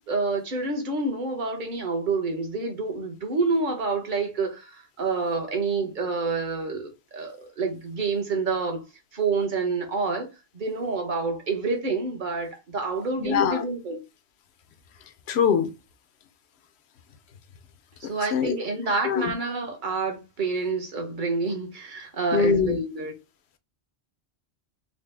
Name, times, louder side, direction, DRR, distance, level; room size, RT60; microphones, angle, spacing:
voice 1, 0.0-8.8 9.1-10.3 10.5-14.0 18.0-23.1, right 3 dB, 50° right, 1.1 m, -28 dB
voice 2, 13.2-13.6 15.3-15.7 18.0-18.6 19.0-19.3 22.3-22.8, left 6 dB, 75° left, 0.8 m, -23 dB
4.0 x 2.0 x 3.3 m
omnidirectional pair, 1.1 m